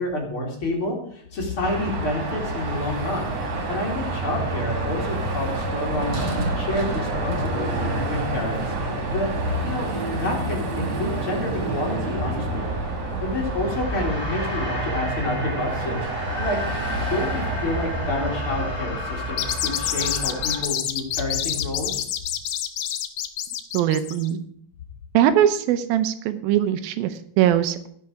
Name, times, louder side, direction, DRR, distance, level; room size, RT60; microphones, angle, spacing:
voice 1, 0.0-3.3 3.7-6.2 6.6-8.7 9.1-9.3 9.6-12.7 13.2-16.6 17.0-22.0, left 2 dB, 40° left, -2 dB, 2.5 m, -29 dB
Car passing by / Traffic noise roadway noise / Engine, 1.6-18.7, right 2 dB, 50° right, 2.8 m, -30 dB
sound 1, 1.7-20.6, right 1 dB, 10° right, 2.0 m, -32 dB
sound 2, 19.3-24.3, left 11 dB, 90° left, 1.5 m, -27 dB
voice 2, 23.7-24.4 25.1-27.9, right 11 dB, 85° right, 11 dB, 2.5 m, -21 dB
16.0 x 5.4 x 4.8 m, 0.64 s
omnidirectional pair, 4.2 m